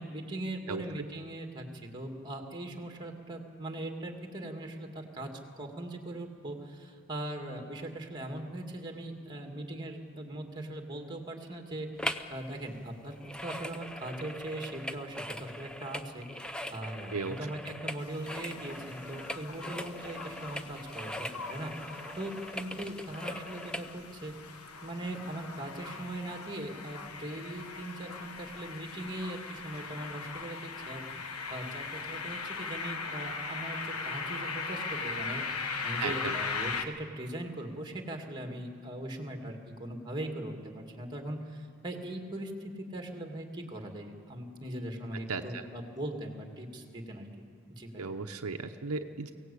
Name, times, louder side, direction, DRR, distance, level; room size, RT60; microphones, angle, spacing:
voice 1, 0.0-5.3 5.5-24.3 24.8-35.5 35.8-47.3 47.7-48.1, right 1 dB, 20° right, 3 dB, 2.2 m, -40 dB
sound 1, 12.0-12.3 12.6-23.9 24.4-24.5, left 1 dB, 5° left, 0.6 m, -41 dB
sound 2, 18.0-36.8, left 5 dB, 85° left, 1.4 m, -39 dB
sound 3, 31.2-36.4 36.7-36.8, right 5 dB, 45° right, 0.8 m, -49 dB
voice 2, 36.0-36.3 45.3-45.6 48.0-49.3, right 4 dB, 80° right, 6 dB, 0.9 m, -35 dB
23.5 x 17.5 x 8.5 m, 2.2 s
head